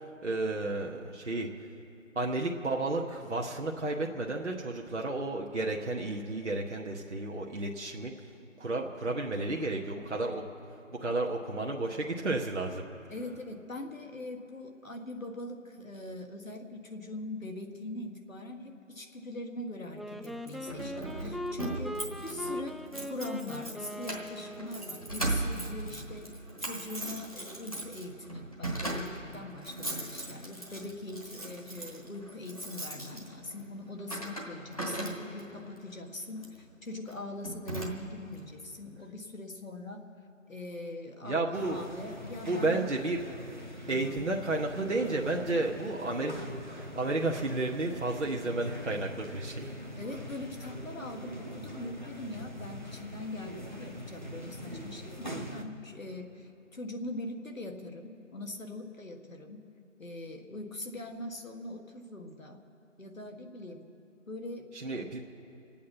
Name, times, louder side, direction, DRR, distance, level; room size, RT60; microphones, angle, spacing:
voice 1, 0.2-1.5 2.1-8.1 8.6-10.4 10.9-12.8 41.2-41.8 42.5-43.2 43.9-49.7 64.7-65.2, right 2 dB, 60° right, 0 dB, 1.0 m, -32 dB
voice 2, 13.1-22.8 23.1-26.3 26.6-40.1 40.5-42.8 43.8-44.3 50.0-59.6 60.0-62.6 63.0-63.9 64.3-65.1, left 2 dB, 80° left, 3 dB, 1.8 m, -42 dB
Wind instrument woodwind instrument, 19.9-25.1, left 1 dB, ahead, 0.4 m, -40 dB
Keys jangling, 20.2-35.6 36.4-36.6 37.1-37.2 37.4-38.3, right 2 dB, 25° left, 1.2 m, -38 dB
sound 1, 41.5-55.6, equal, 35° right, 0.9 m, -43 dB
24.5 x 8.5 x 5.7 m, 2.9 s
figure-of-eight pair, 180°, 40 cm